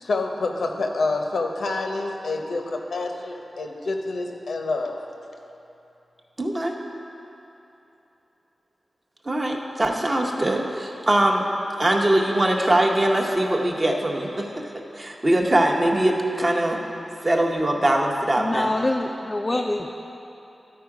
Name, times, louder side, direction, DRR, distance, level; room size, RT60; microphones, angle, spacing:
voice 1, 0.0-5.0, left 3 dB, 85° left, 3 dB, 0.7 m, -27 dB
voice 2, 6.4-6.7 9.2-11.5 11.8-14.6 15.0-16.8 17.2-18.7, right 1 dB, 30° right, 1 dB, 0.7 m, -22 dB
voice 3, 18.4-19.9, left 2 dB, 25° left, 2 dB, 0.3 m, -25 dB
12.5 x 4.5 x 4.7 m, 2.9 s
wide cardioid pair, 135°, 0 cm